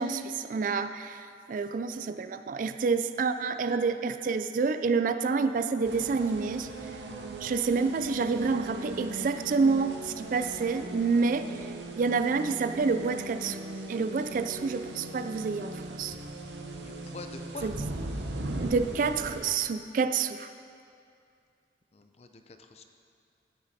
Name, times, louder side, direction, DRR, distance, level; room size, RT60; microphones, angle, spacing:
voice 1, 0.0-6.7 7.4-13.6 13.9-16.2 17.6-17.7 18.6-20.5, right 4 dB, 50° right, 10 dB, 0.3 m, -28 dB
sound 1, 5.8-19.4, right 1 dB, 80° right, 0.8 m, -39 dB
voice 2, 16.8-17.7 21.9-22.8, left 3 dB, 35° left, 6 dB, 0.5 m, -45 dB
13.0 x 6.3 x 4.1 m, 2.4 s
head